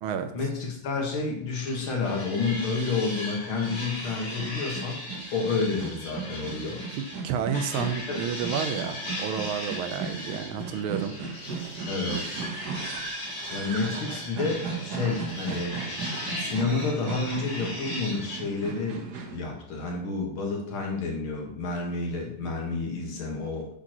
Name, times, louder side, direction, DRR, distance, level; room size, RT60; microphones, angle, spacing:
voice 1, 0.3-5.0 5.3-6.8 7.8-8.3 11.9-12.4 13.5-15.7 16.4-23.7, left 4 dB, 75° left, 0 dB, 2.4 m, -30 dB
sound 1, 1.5-7.2 7.5-18.4, left 1 dB, 60° left, 2.9 m, -38 dB
sound 2, 3.5-19.4, right 5 dB, 60° right, 1.4 m, -37 dB
voice 2, 6.9-11.2, right 7 dB, 85° right, 8 dB, 1.6 m, -30 dB
8.4 x 6.7 x 3.0 m, 0.68 s
omnidirectional pair, 2.3 m